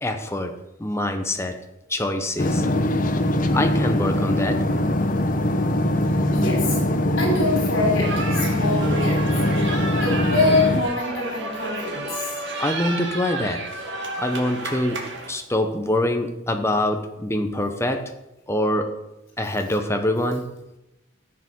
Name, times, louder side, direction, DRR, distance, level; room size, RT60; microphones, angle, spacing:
voice 1, 0.0-1.6 1.9-2.6 3.5-4.6 12.6-13.7 14.2-18.1 18.5-19.0 19.4-20.5, left 1 dB, 15° left, 6 dB, 1.0 m, -25 dB
sound 1, 2.4-10.8, left 1 dB, 40° left, 1.0 m, -22 dB
voice 2, 6.3-6.8 7.2-9.3 9.6-12.4, left 2 dB, 65° left, -1 dB, 5.1 m, -25 dB
sound 2, 8.0-15.3, right 2 dB, 60° right, 2.2 m, -31 dB
13.5 x 8.3 x 6.3 m, 0.93 s
head